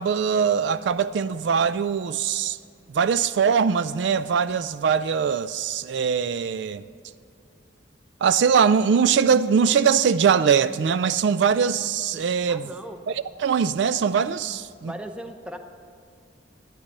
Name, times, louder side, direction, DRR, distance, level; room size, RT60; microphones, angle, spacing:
voice 1, 0.0-2.6 2.9-6.8 8.2-12.7 13.1-14.9, right 6 dB, 70° right, 0.3 m, -22 dB
voice 2, 12.5-13.0 14.8-15.6, right 1 dB, 5° right, 0.7 m, -37 dB
12.0 x 10.0 x 6.6 m
head